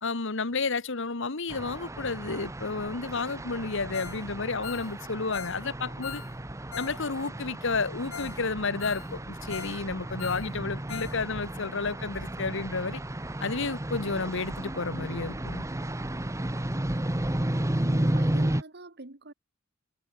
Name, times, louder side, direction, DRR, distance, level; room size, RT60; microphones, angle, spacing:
voice 1, 0.0-6.2 6.8-13.0 13.4-15.6, left 4 dB, 65° left, 1.4 m, -31 dB
sound 1, 1.5-18.6, right 1 dB, 15° right, 0.9 m, -33 dB
Ringtone, 3.9-4.2 4.5-7.0 7.3-7.4 7.8-7.9 8.1-8.4 8.7-9.8 10.0-11.2 11.4-11.5 12.0-12.1, left 8 dB, 85° left, 0.7 m, -41 dB
voice 2, 17.8-19.3, right 2 dB, 55° right, 2.0 m, -43 dB
head